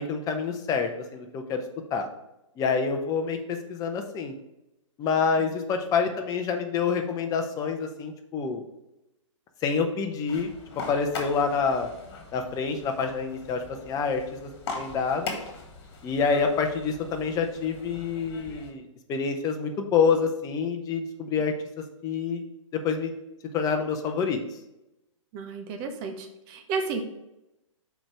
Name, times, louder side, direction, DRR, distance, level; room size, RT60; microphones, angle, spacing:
voice 1, 0.0-1.6 1.9-2.1 2.6-4.3 5.0-8.6 9.6-10.5 10.9-11.9 12.3-15.3 16.0-18.8 19.1-21.5 22.0-22.4 22.7-23.1 23.5-24.4, left 5 dB, 20° left, 5 dB, 0.8 m, -27 dB
sound 1, 10.3-18.7, left 4 dB, 50° left, 1.8 m, -40 dB
voice 2, 25.3-27.0, right 5 dB, 30° right, 5 dB, 1.0 m, -32 dB
6.4 x 4.7 x 4.8 m, 0.92 s
figure-of-eight pair, 120°, 17 cm